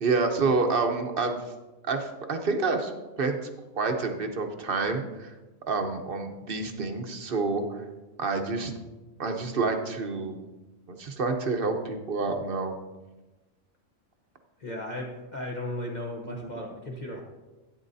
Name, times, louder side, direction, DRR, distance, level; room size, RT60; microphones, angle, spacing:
voice 1, 0.0-1.5 1.8-2.9 3.2-3.4 3.7-5.4 5.7-7.9 8.2-8.7 9.2-10.4 10.9-12.7 16.5-16.6, right 3 dB, 45° right, 5 dB, 1.0 m, -28 dB
voice 2, 14.6-17.2, left 1 dB, 35° left, -2 dB, 1.0 m, -35 dB
11.5 x 9.4 x 2.7 m, 1.1 s
omnidirectional pair, 1.4 m